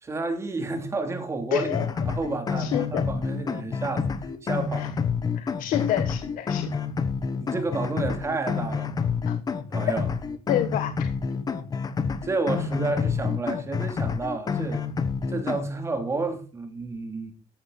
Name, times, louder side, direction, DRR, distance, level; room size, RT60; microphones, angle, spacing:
voice 1, 0.0-4.1 4.4-4.9 7.4-9.1 9.7-10.1 12.2-14.8 15.3-17.3, right 3 dB, 20° right, 3.0 m, -30 dB
voice 2, 1.5-1.9 2.6-3.1 4.8-4.9 5.4-6.7 9.2-9.4 10.5-11.1, left 11 dB, 75° left, 1.4 m, -28 dB
sound 1, 1.5-15.7, left 6 dB, 25° left, 1.3 m, -28 dB
14.0 x 12.0 x 4.1 m
cardioid pair, 180°, 14 cm